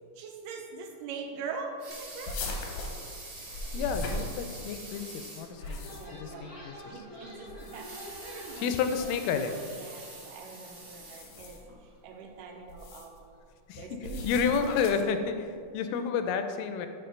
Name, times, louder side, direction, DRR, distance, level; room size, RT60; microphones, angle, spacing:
voice 1, 0.2-2.4 5.9-6.5 6.9-8.7 9.7-13.3 13.8-14.3, right 5 dB, 85° right, 3 dB, 2.3 m, -43 dB
Water tap faucet / Sink (filling or washing) / Liquid, 1.6-5.6 6.0-6.1 6.4-6.5 7.6-11.8 12.4-12.5, right 2 dB, 45° right, 1.7 m, -46 dB
sound 1, 2.3-4.9 5.4-6.3 7.4-8.1 8.9-9.2 11.0-11.7 12.7-13.2 14.0-15.2, left 2 dB, 70° left, 1.6 m, -38 dB
sound 2, 3.4-9.6, left 1 dB, 40° left, 0.7 m, -48 dB
voice 2, 3.7-6.8 8.6-9.6 13.7-16.9, left 6 dB, 85° left, 8 dB, 2.2 m, -30 dB
6.8 x 4.0 x 5.0 m, 2.3 s
omnidirectional pair, 3.8 m